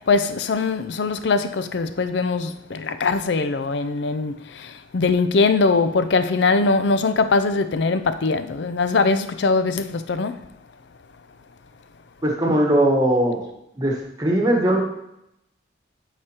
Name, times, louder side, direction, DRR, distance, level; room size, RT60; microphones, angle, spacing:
voice 1, 0.1-4.3 4.9-10.3, left 4 dB, 60° left, 0.4 m, -21 dB
voice 2, 12.2-13.4 13.8-14.8, right 1 dB, 20° right, 1.2 m, -19 dB
12.0 x 4.9 x 2.9 m
head